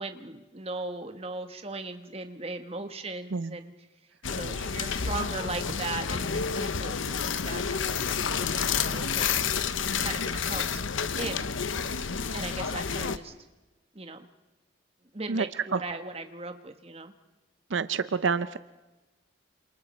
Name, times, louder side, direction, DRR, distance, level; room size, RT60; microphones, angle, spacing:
voice 1, 0.0-3.7 4.3-9.3 9.9-11.5 11.8-12.1 12.3-13.3 13.9-14.3 15.1-17.1, right 3 dB, 30° right, 7 dB, 1.4 m, -38 dB
sound 1, 4.2-13.2, left 6 dB, 85° left, 0.9 m, -30 dB
voice 2, 17.7-18.6, right 5 dB, 80° right, 13 dB, 0.6 m, -27 dB
28.5 x 27.5 x 4.4 m, 1.1 s
head